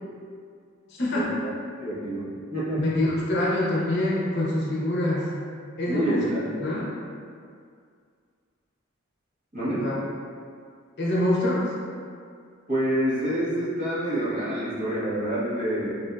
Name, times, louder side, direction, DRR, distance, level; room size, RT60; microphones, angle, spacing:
voice 1, 0.9-1.3 2.8-5.3 5.8-6.2 6.6-6.9 9.7-9.9 11.0-11.7, left 1 dB, 60° left, -6 dB, 0.7 m, -25 dB
voice 2, 1.8-2.8 5.8-6.5 9.5-9.8 12.7-15.9, right 1 dB, 40° right, -11 dB, 1.1 m, -27 dB
4.2 x 2.6 x 2.2 m, 2.2 s
head